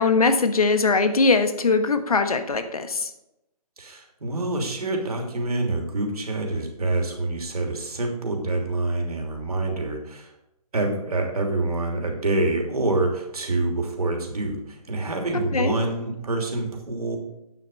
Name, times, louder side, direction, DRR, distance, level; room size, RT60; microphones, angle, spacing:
voice 1, 0.0-3.1 15.5-15.7, left 4 dB, 65° left, 8 dB, 1.3 m, -21 dB
voice 2, 3.8-10.3 10.7-17.2, right 2 dB, 75° right, 2 dB, 3.0 m, -26 dB
9.3 x 7.1 x 5.3 m, 0.88 s
hypercardioid pair, 180°, 20 cm